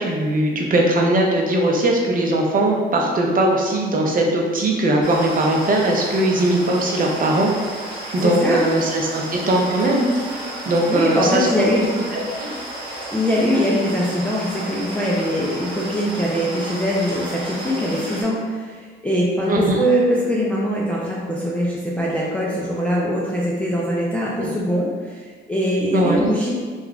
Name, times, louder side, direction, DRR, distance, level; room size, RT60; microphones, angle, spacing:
voice 1, 0.0-7.5 8.1-10.1 10.7-11.6 12.1-12.5 19.5-19.8 24.4-24.5 25.9-26.3, right 1 dB, 45° right, 0 dB, 0.7 m, -19 dB
sound 1, 5.0-18.2, right 1 dB, 25° right, 1.3 m, -33 dB
voice 2, 8.2-8.6 10.9-11.9 13.1-19.5 19.8-26.5, equal, 5° left, -6 dB, 0.5 m, -22 dB
2.9 x 2.4 x 3.5 m, 1.5 s
cardioid pair, 90°, 20 cm